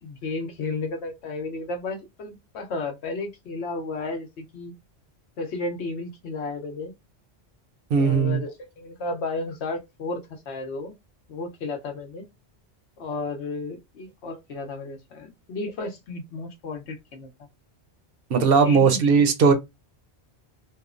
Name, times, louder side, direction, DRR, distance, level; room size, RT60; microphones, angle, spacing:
voice 1, 0.0-4.7 5.4-6.9 7.9-10.9 11.3-12.2 13.0-17.3 18.6-19.0, left 3 dB, 80° left, 1.0 m, -33 dB
voice 2, 7.9-8.4 18.3-19.5, right 5 dB, 65° right, 0.7 m, -18 dB
3.0 x 2.0 x 2.4 m
omnidirectional pair, 1.1 m